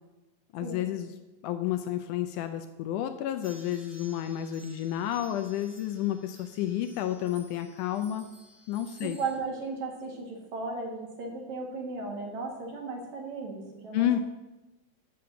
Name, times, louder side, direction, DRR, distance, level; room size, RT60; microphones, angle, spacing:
voice 1, 0.5-1.1 1.4-8.3 8.7-9.2 13.9-14.2, left 11 dB, 80° left, 8 dB, 1.9 m, -30 dB
sound 1, 3.4-9.4, equal, 15° right, 1.7 m, -54 dB
voice 2, 9.0-14.2, right 3 dB, 60° right, 0 dB, 3.0 m, -36 dB
6.9 x 6.7 x 7.8 m, 1.1 s
omnidirectional pair, 3.9 m